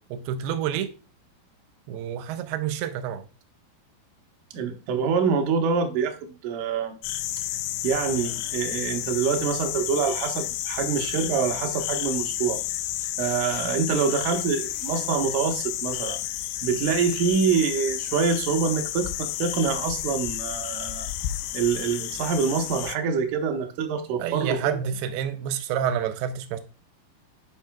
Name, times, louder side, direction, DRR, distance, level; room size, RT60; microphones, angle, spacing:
voice 1, 0.1-0.9 1.9-3.2 24.2-26.6, right 9 dB, 90° right, 2.6 m, -28 dB
voice 2, 4.5-7.0 7.8-12.6 13.2-16.2 16.6-21.1 21.5-24.8, right 6 dB, 70° right, 2.1 m, -25 dB
sound 1, 7.0-23.0, left 13 dB, 85° left, 2.6 m, -31 dB
10.0 x 5.5 x 2.3 m
omnidirectional pair, 4.6 m